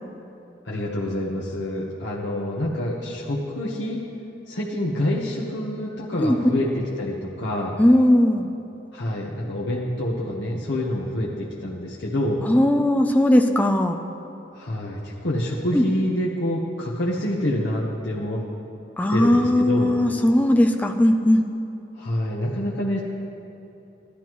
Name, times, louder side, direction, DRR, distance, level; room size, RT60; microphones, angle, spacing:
voice 1, 0.6-4.0 4.5-7.8 8.9-12.4 14.5-18.4 19.1-19.9 22.0-23.0, left 1 dB, 75° left, -4 dB, 1.1 m, -27 dB
voice 2, 7.8-8.5 12.5-14.0 15.7-15.8 19.0-21.4, left 1 dB, 10° left, 4 dB, 0.4 m, -18 dB
14.5 x 11.5 x 3.1 m, 2.9 s
head